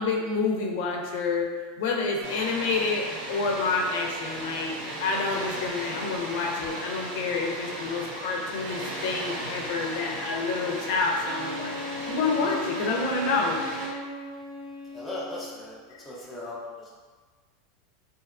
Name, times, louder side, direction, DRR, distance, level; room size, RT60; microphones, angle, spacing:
voice 1, 0.0-1.5 1.8-4.7 5.0-11.7 12.1-13.6, left 4 dB, 65° left, 0 dB, 0.4 m, -28 dB
Water, 2.2-13.9, right 1 dB, 85° right, 0.7 m, -36 dB
Wind instrument woodwind instrument, 11.2-15.6, equal, 40° right, 0.9 m, -37 dB
voice 2, 14.9-15.8 16.0-16.6, left 1 dB, 5° left, -7 dB, 0.4 m, -37 dB
2.7 x 2.3 x 2.3 m, 1.4 s
supercardioid pair, 160°, 0 cm